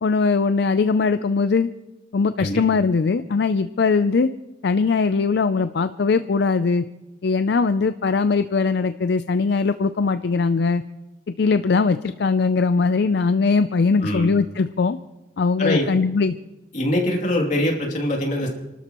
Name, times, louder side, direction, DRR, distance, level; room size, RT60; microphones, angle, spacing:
voice 1, 0.0-1.7 2.1-4.3 4.6-6.8 7.2-10.8 11.4-15.0 15.4-16.3, left 4 dB, 60° left, 11 dB, 0.4 m, -20 dB
voice 2, 14.0-14.3 15.6-15.9 16.7-18.5, left 1 dB, 40° left, 0 dB, 2.7 m, -23 dB
29.5 x 13.0 x 3.0 m, 1.0 s
head